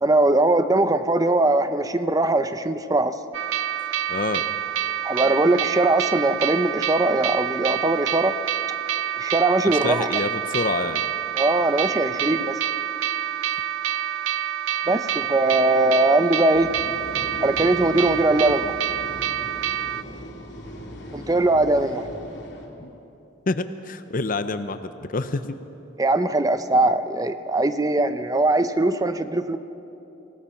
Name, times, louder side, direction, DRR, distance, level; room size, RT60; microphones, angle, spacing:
voice 1, 0.0-3.1 5.0-8.3 9.2-10.1 11.4-12.5 14.9-16.7 17.4-18.8 21.1-22.1 26.0-29.6, right 2 dB, 20° right, 10 dB, 0.7 m, -21 dB
sound 1, 3.3-20.0, right 10 dB, 90° right, 0.4 m, -27 dB
voice 2, 4.1-4.4 9.6-11.0 22.8-22.9 23.5-25.6, left 3 dB, 45° left, 11 dB, 0.6 m, -27 dB
sound 2, 16.5-22.7, equal, 65° left, 3.0 m, -39 dB
25.5 x 18.0 x 5.7 m, 3.0 s
head